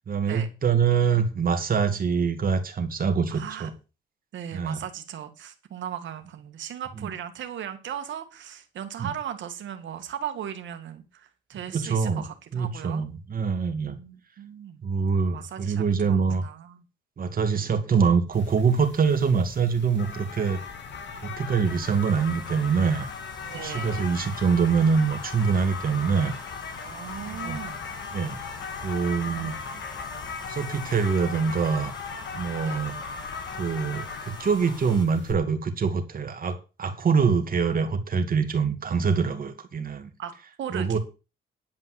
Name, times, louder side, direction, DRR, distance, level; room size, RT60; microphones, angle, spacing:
voice 1, 0.0-3.7 4.5-4.8 7.0-7.1 9.0-9.1 11.7-12.2 12.5-14.0 14.8-16.4 17.2-20.6 21.1-23.1 23.4-26.3 27.3-27.6 28.1-28.4 28.8-29.6 30.5-32.0 32.3-32.9 33.6-40.1 40.7-41.0, right 5 dB, 45° right, 2.3 m, -24 dB
voice 2, 3.3-3.7 4.3-13.1 13.8-14.8 15.3-16.8 17.5-17.7 23.5-24.1 26.7-27.8 29.3-29.8 32.6-32.8 40.2-40.3 40.6-41.0, right 9 dB, 70° right, 2.1 m, -37 dB
sound 1, 18.3-35.3, left 5 dB, 65° left, 2.3 m, -38 dB
Domestic sounds home sounds, 21.6-35.1, left 2 dB, 20° left, 2.3 m, -47 dB
10.5 x 5.4 x 7.8 m
cardioid pair, 90°, 20 cm